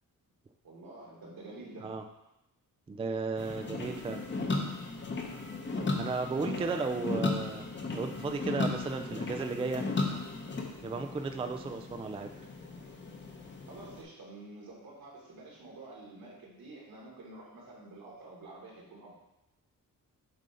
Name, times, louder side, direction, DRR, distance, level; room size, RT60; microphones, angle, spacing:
voice 1, 0.6-2.0 6.5-7.0 13.7-19.1, right 2 dB, 80° right, -4 dB, 2.1 m, -48 dB
voice 2, 2.9-4.2 6.0-7.7 7.9-9.9 10.8-12.3, right 4 dB, 15° right, 6 dB, 0.3 m, -34 dB
sound 1, 3.4-14.0, left 3 dB, 30° left, 0.8 m, -36 dB
7.6 x 2.8 x 5.0 m, 0.90 s
wide cardioid pair, 130°, 35 cm